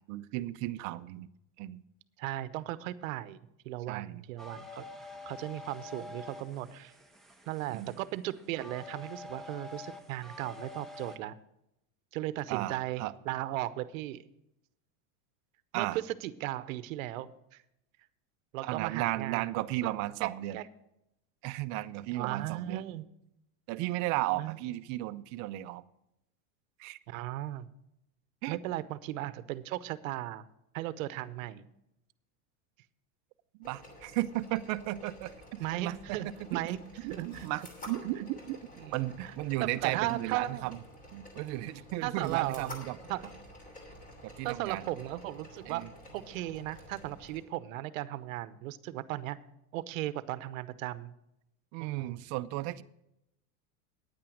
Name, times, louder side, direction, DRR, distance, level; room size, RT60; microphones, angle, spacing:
voice 1, 0.1-1.3 1.6-1.8 3.9-4.2 7.7-8.0 12.5-13.1 15.7-16.0 18.6-20.6 21.4-22.9 23.7-25.8 26.8-27.0 28.4-28.6 33.6-36.2 36.5-36.6 37.0-38.6 38.9-40.8 41.1-43.0 44.2-44.8 45.7-45.9 51.7-52.8, right 16 dB, 45° right, 13 dB, 0.6 m, -35 dB
voice 2, 2.2-3.4 3.6-4.9 5.3-6.9 7.5-11.3 12.1-14.2 15.7-17.6 18.5-19.5 19.8-19.9 20.2-20.6 22.1-23.1 24.4-24.6 27.1-27.7 28.5-30.5 30.7-31.7 35.6-36.8 37.1-37.5 38.8-39.3 39.6-40.7 42.0-42.8 43.1-43.3 44.4-45.8 46.1-49.4 49.7-51.1 51.8-52.2, right 15 dB, 75° right, 15 dB, 0.9 m, -36 dB
sound 1, 4.4-11.2, left 3 dB, ahead, 0.9 m, -47 dB
sound 2, 33.6-47.4, left 1 dB, 20° left, 2.8 m, -50 dB
9.7 x 9.0 x 6.3 m, 0.83 s
supercardioid pair, 140°, 40 cm